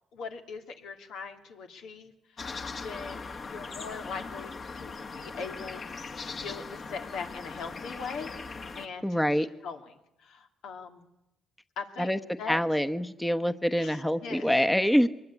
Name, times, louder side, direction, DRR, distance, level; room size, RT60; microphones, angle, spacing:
voice 1, 0.1-5.8 6.2-8.3 8.8-9.2 9.6-11.0 11.8-12.1 12.4-12.6 13.8-14.5, left 5 dB, 85° left, 4 dB, 2.8 m, -41 dB
sound 1, 2.4-8.9, left 4 dB, 45° left, 2.1 m, -40 dB
voice 2, 9.0-9.5 12.0-12.2 12.5-15.1, equal, 5° left, 9 dB, 1.0 m, -25 dB
23.5 x 21.0 x 9.9 m, 0.88 s
cardioid pair, 90°, 0 cm